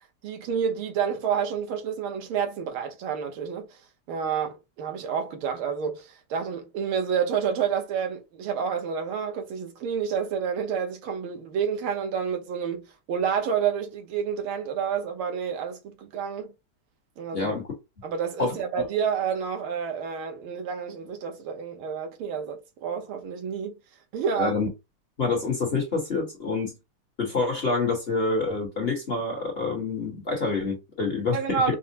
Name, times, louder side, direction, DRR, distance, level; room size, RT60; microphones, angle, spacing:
voice 1, 0.2-3.8 4.1-16.5 17.2-17.6 18.0-23.7 24.1-24.6 31.3-31.8, right 7 dB, 80° right, 1.8 m, -29 dB
voice 2, 18.4-18.8 24.3-24.7 25.2-26.7 27.2-31.8, left 3 dB, 35° left, 1.2 m, -27 dB
5.4 x 2.1 x 2.8 m
omnidirectional pair, 2.3 m